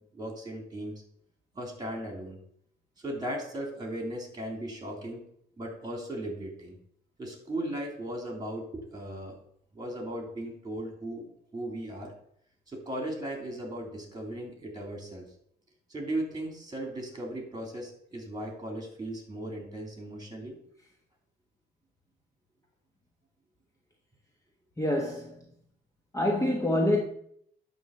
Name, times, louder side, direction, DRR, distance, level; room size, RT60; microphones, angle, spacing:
voice 1, 0.1-1.0 1.5-2.4 3.0-5.2 5.6-6.8 7.2-9.4 9.7-12.1 12.7-15.2 15.9-20.6, right 1 dB, 20° right, 3.5 m, -37 dB
voice 2, 24.8-25.4 26.1-27.0, left 1 dB, 15° left, 1.3 m, -26 dB
11.0 x 3.7 x 7.2 m
cardioid pair, 90°, 20 cm